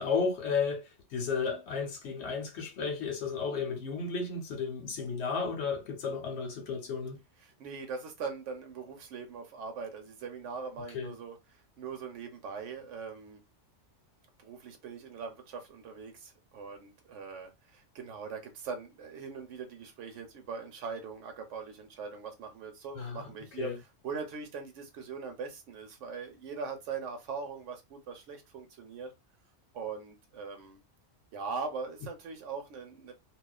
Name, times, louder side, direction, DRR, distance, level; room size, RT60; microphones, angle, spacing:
voice 1, 0.0-7.2 10.9-11.1 22.9-23.3 23.6-23.8, left 5 dB, 70° left, 0.9 m, -33 dB
voice 2, 7.4-13.4 14.4-23.7 24.0-29.1 29.7-30.8 31.3-33.1, right 5 dB, 85° right, 1.0 m, -41 dB
2.4 x 2.2 x 2.3 m
omnidirectional pair, 1.2 m